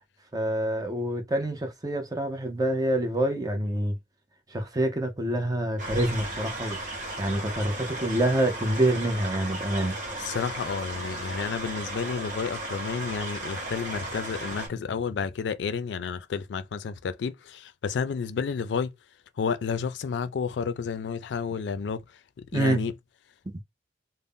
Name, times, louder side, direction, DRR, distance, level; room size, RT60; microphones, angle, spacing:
voice 1, 0.3-4.0 4.5-6.8 7.2-10.4 22.5-22.8, right 1 dB, 20° right, 0.6 m, -27 dB
sound 1, 5.8-14.7, right 1 dB, 45° right, 1.2 m, -35 dB
voice 2, 10.2-18.9 19.4-22.0 22.4-22.9, left 6 dB, 85° left, 0.4 m, -31 dB
2.5 x 2.0 x 3.5 m
head